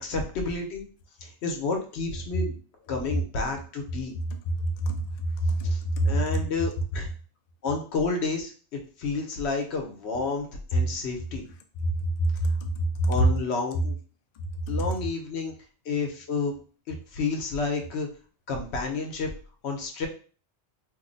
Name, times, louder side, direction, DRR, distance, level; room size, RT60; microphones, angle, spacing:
voice 1, 0.0-0.9 1.2-2.6 2.9-4.1 5.6-7.1 7.6-11.4 13.1-14.0 14.7-15.5 15.9-16.5 16.9-18.1 18.5-19.3 19.6-20.1, left 4 dB, 75° left, 1.0 m, -30 dB
voice 2, 4.6-5.0 5.4-6.2 11.8-11.9 12.2-13.2 14.7-14.8, right 1 dB, 60° left, 0.4 m, -25 dB
2.6 x 2.0 x 3.8 m
omnidirectional pair, 1.2 m